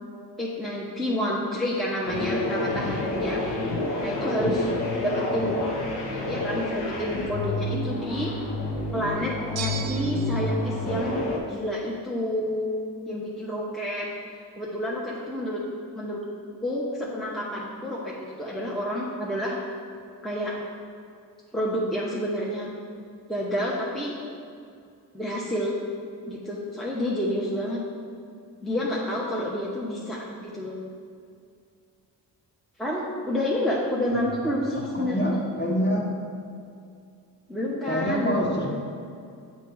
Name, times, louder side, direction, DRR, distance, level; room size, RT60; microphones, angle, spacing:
voice 1, 0.4-3.4 4.0-4.7 5.0-5.7 6.3-8.3 8.9-11.1 11.5-12.7 13.1-14.1 14.6-15.6 15.9-16.2 16.6-19.6 20.2-20.6 21.5-22.7 23.3-24.2 25.1-25.7 26.3-27.8 28.6-30.7 32.8-35.2 37.5-38.7, left 1 dB, ahead, -6 dB, 0.9 m, -29 dB
sound 1, 2.1-11.4, left 2 dB, 65° left, 1.1 m, -29 dB
voice 2, 4.9-5.6 34.4-34.5 34.9-36.1 37.9-38.7, equal, 25° left, -3 dB, 1.4 m, -27 dB
sound 2, 9.6-10.5, right 7 dB, 60° right, 0.6 m, -35 dB
6.8 x 3.0 x 4.7 m, 2.4 s
cardioid pair, 65°, 42 cm